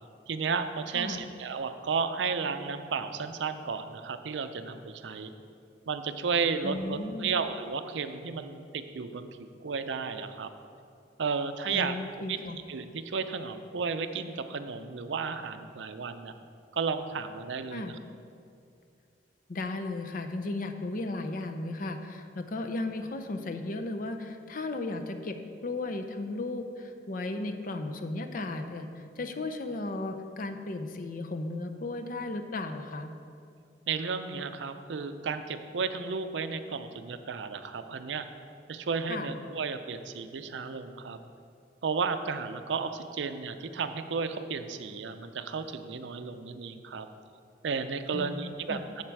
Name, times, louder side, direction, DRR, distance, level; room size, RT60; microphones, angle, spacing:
voice 1, 0.3-5.3 5.9-10.5 11.2-11.9 12.3-12.4 12.7-16.3 16.7-18.0 33.9-38.3 38.7-41.2 41.8-47.1 47.6-48.8, right 5 dB, 85° right, 9 dB, 0.5 m, -33 dB
voice 2, 6.6-7.4 11.7-12.6 17.7-17.9 19.5-33.1 39.1-39.3 48.1-48.8, left 2 dB, 50° left, 6 dB, 0.6 m, -35 dB
7.5 x 7.3 x 4.6 m, 2.4 s
head